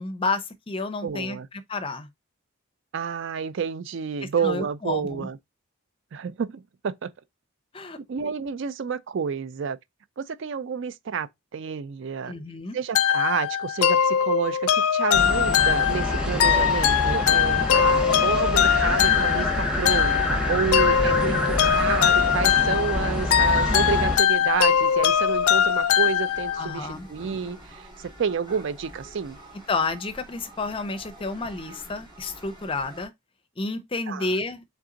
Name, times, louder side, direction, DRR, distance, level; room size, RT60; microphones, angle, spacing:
voice 1, 0.0-1.4 1.7-2.1 4.4-5.3 7.7-8.0 12.3-12.8 21.1-21.4 26.6-27.1 29.7-33.1 33.6-34.6, left 3 dB, 25° left, 0.5 m, -30 dB
voice 2, 1.0-1.5 2.9-5.4 6.1-7.1 8.1-9.8 10.2-12.3 12.7-29.4 34.1-34.3, right 6 dB, 55° right, 0.4 m, -29 dB
sound 1, 12.9-26.8, left 9 dB, 80° left, 0.4 m, -22 dB
sound 2, 15.1-24.2, left 1 dB, 5° right, 0.9 m, -27 dB
sound 3, 17.3-33.1, equal, 20° right, 2.2 m, -46 dB
3.9 x 3.4 x 3.7 m
head